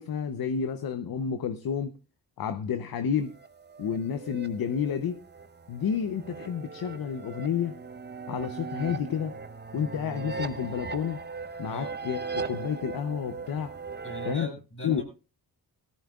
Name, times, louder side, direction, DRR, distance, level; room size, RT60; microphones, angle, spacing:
voice 1, 0.0-1.9 2.4-3.3 3.8-5.2 5.7-7.8 8.3-9.4 9.7-11.2 11.6-13.7 14.2-14.5 14.8-15.0, left 7 dB, 65° left, 0.8 m, -30 dB
sound 1, 3.3-14.3, right 4 dB, 25° right, 0.9 m, -39 dB
voice 2, 14.0-15.0, left 1 dB, 35° left, 6.3 m, -39 dB
17.5 x 14.5 x 2.4 m
cardioid pair, 90°, 39 cm